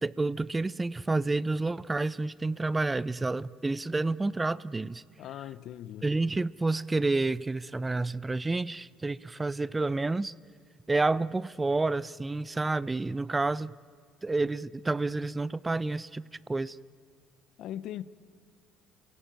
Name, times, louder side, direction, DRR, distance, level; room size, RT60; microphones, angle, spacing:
voice 1, 0.0-5.0 6.0-10.3 10.9-13.7 14.2-16.2 16.5-16.8, right 3 dB, 20° right, 0.5 m, -29 dB
voice 2, 5.2-6.1 17.6-18.0, left 12 dB, 65° left, 0.7 m, -39 dB
29.0 x 16.5 x 9.0 m
hypercardioid pair, 65°, 0 cm